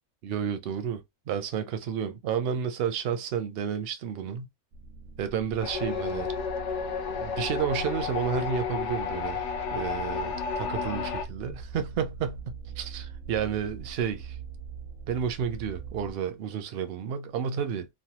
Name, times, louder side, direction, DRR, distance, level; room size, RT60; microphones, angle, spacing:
voice 1, 0.2-4.5 5.2-6.3 7.1-9.5 9.7-12.4 12.8-14.4 15.1-17.9, right 8 dB, 65° right, 0.7 m, -31 dB
sound 1, 4.7-16.1, right 5 dB, 85° right, 1.0 m, -42 dB
sound 2, 5.6-11.3, left 7 dB, 70° left, 0.9 m, -32 dB
3.1 x 2.2 x 2.8 m
omnidirectional pair, 1.3 m